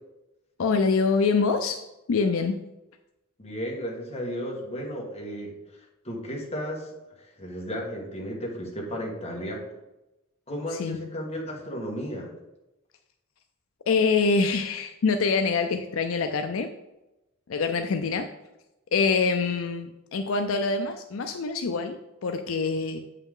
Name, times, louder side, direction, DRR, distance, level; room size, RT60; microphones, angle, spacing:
voice 1, 0.6-1.8 2.1-2.6 10.7-11.0 13.9-16.7 17.5-18.3 18.9-23.0, left 4 dB, 70° left, 7 dB, 0.4 m, -25 dB
voice 2, 3.4-6.9 7.2-9.7 10.5-12.3, equal, 30° left, -2 dB, 1.7 m, -34 dB
8.2 x 5.7 x 3.7 m, 0.97 s
head